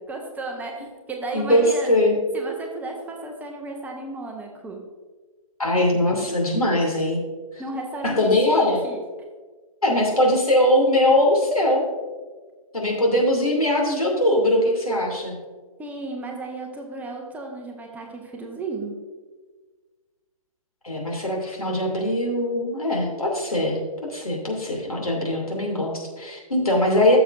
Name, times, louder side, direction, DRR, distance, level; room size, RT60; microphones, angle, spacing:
voice 1, 0.1-1.9 2.3-4.8 7.6-9.0 15.8-19.0, right 2 dB, 10° right, 1 dB, 0.9 m, -34 dB
voice 2, 1.3-2.2 5.6-7.2 8.0-8.8 9.8-11.8 12.7-15.4 20.8-23.8 24.1-27.2, left 1 dB, 85° left, -1 dB, 2.7 m, -21 dB
14.0 x 6.9 x 2.6 m, 1.4 s
figure-of-eight pair, 125°, 18 cm